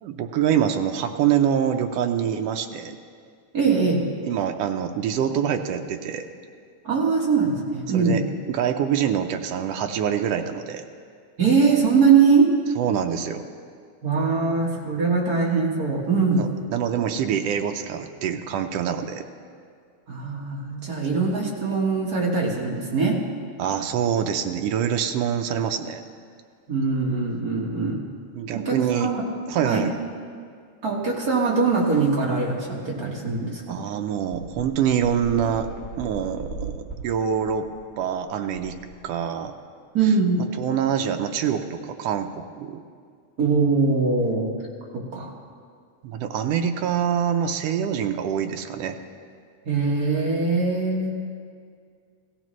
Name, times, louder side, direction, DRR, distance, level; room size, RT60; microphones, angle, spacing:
voice 1, 0.0-3.0 4.2-6.3 7.9-10.8 12.8-13.5 16.4-19.2 23.6-26.0 28.3-29.1 29.5-29.9 33.7-35.7 36.0-37.7 38.0-38.8 39.0-39.5 40.6-42.3 42.6-42.8 46.0-49.0, right 8 dB, 80° right, 6 dB, 1.4 m, -25 dB
voice 2, 3.5-4.1 6.8-8.2 11.4-12.5 14.0-16.5 20.1-23.2 26.7-28.0 28.5-29.2 29.6-29.9 30.8-33.8 39.9-40.4 43.4-44.6 45.1-45.3 49.6-51.1, right 4 dB, 45° right, -3 dB, 1.2 m, -22 dB
sound 1, 33.3-33.4 33.7-33.8 34.3-39.5, right 2 dB, 5° left, 1.5 m, -39 dB
16.5 x 15.0 x 3.1 m, 2.1 s
omnidirectional pair, 3.4 m